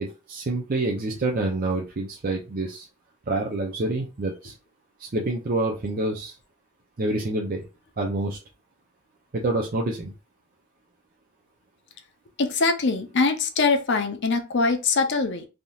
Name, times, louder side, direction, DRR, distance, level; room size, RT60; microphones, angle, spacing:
voice 1, 0.3-2.9 3.3-4.5 5.0-6.3 7.0-7.6 8.0-8.4 9.3-10.1, right 2 dB, 45° right, 0 dB, 0.5 m, -27 dB
voice 2, 12.4-15.5, left 4 dB, 55° left, 5 dB, 0.6 m, -23 dB
3.5 x 2.7 x 2.3 m, 0.29 s
head